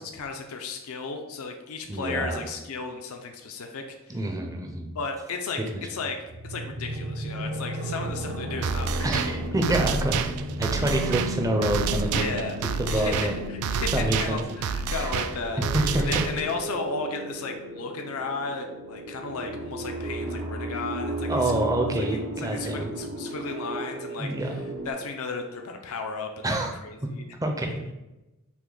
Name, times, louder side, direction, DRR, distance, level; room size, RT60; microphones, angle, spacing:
voice 1, 0.0-4.2 4.9-5.6 5.9-9.4 12.1-12.6 12.9-15.6 16.0-21.5 22.0-26.6 26.8-27.3, left 4 dB, 75° left, 4 dB, 0.5 m, -34 dB
voice 2, 1.9-2.5 4.1-4.9 5.7-5.8 9.0-10.3 10.6-12.4 12.8-13.3 13.9-14.4 14.9-15.0 15.6-16.0 21.3-22.9 24.2-24.6 26.4-26.7 27.4-27.9, right 1 dB, 15° right, 2 dB, 0.5 m, -27 dB
sound 1, 6.2-24.9, right 1 dB, 55° right, 0.6 m, -35 dB
sound 2, 8.6-16.6, right 5 dB, 85° right, 0.3 m, -29 dB
5.9 x 2.2 x 3.8 m, 1.0 s
head